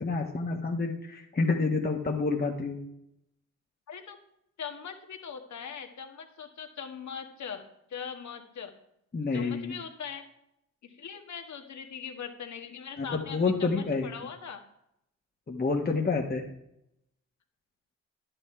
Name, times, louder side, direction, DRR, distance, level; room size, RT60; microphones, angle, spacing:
voice 1, 0.0-2.8 9.1-9.7 13.0-14.1 15.5-16.4, left 4 dB, 30° left, 0 dB, 1.5 m, -28 dB
voice 2, 3.9-4.2 4.6-7.6 7.9-8.7 9.3-10.3 10.8-14.6, left 7 dB, 55° left, 5 dB, 1.7 m, -41 dB
11.0 x 8.2 x 4.5 m, 0.79 s
hypercardioid pair, 50°, 34 cm